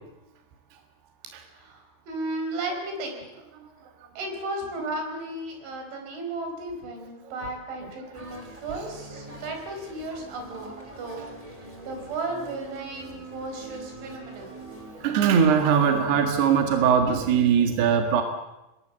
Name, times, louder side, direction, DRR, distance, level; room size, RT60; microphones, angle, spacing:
voice 1, 1.5-3.3 4.2-11.3 11.9-14.6, right 2 dB, 85° right, 4 dB, 7.4 m, -34 dB
sound 1, 8.1-16.4, right 2 dB, 10° right, 3.5 m, -43 dB
voice 2, 15.0-18.2, right 7 dB, 65° right, 4 dB, 3.7 m, -21 dB
27.0 x 22.5 x 7.7 m, 0.96 s
omnidirectional pair, 5.3 m